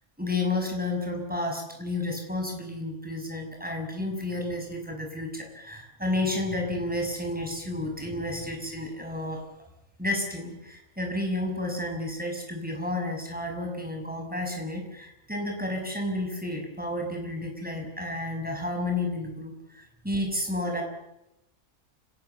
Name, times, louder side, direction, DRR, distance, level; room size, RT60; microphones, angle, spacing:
voice 1, 0.2-9.4 10.0-20.8, left 2 dB, 5° right, 1 dB, 6.1 m, -31 dB
29.5 x 17.5 x 7.0 m, 0.89 s
omnidirectional pair, 1.5 m